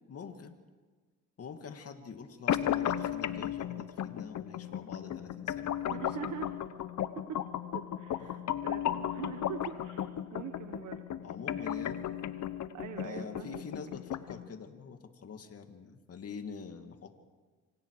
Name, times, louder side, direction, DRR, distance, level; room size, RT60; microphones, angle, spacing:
voice 1, 0.1-0.6 1.4-6.0 8.2-8.4 11.2-12.0 13.0-17.2, left 5 dB, 50° left, 6 dB, 2.4 m, -45 dB
sound 1, 2.5-14.5, left 10 dB, 70° left, 1.2 m, -35 dB
voice 2, 5.9-6.5 7.7-11.2 11.5-11.7 12.7-13.7, right 9 dB, 75° right, 8 dB, 1.4 m, -44 dB
27.5 x 26.5 x 5.0 m, 1.4 s
cardioid pair, 90°, 30 cm